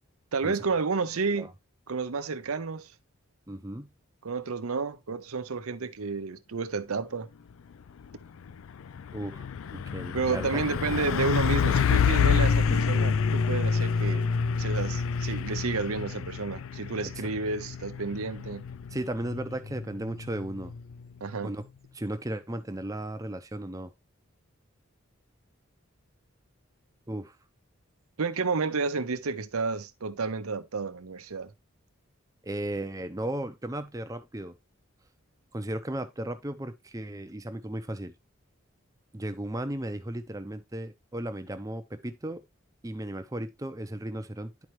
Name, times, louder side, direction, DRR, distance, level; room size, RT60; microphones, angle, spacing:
voice 1, 0.3-1.5 1.9-2.9 4.2-7.3 10.1-14.3 14.6-18.6 21.2-21.5 28.2-31.5, right 4 dB, 90° right, 0.7 m, -31 dB
voice 2, 3.5-3.9 9.1-9.5 9.7-10.6 10.9-11.0 11.4-11.6 17.2-17.3 18.9-20.7 21.4-21.6 21.9-23.9 27.1-27.3 32.4-34.5 35.5-38.1 39.1-42.4 42.8-44.7, right 1 dB, 15° right, 0.7 m, -35 dB
Truck, 7.9-8.1 8.5-21.1, left 6 dB, 70° left, 0.4 m, -28 dB
10.5 x 4.5 x 3.1 m
head